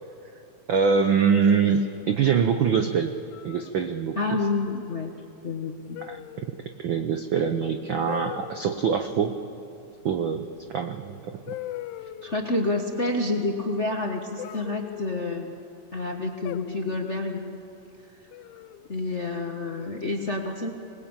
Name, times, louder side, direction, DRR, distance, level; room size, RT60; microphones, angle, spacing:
voice 1, 0.7-3.1 3.4-4.2 6.1-6.2 6.8-9.3 10.0-11.4, right 6 dB, 75° right, 7 dB, 1.1 m, -24 dB
sound 1, 1.2-2.1 3.3-3.7 4.2-4.5 5.9-6.6 8.1-8.7 10.6-10.7 11.5-12.4 14.4-15.5 16.4-17.1 18.3-18.9, left 14 dB, 85° left, 2.1 m, -40 dB
voice 2, 4.2-5.1 5.4-6.0 12.0-15.5 15.9-17.5 18.9-20.7, left 2 dB, 40° left, 1 dB, 1.0 m, -28 dB
26.0 x 20.0 x 8.8 m, 2.7 s
omnidirectional pair, 3.4 m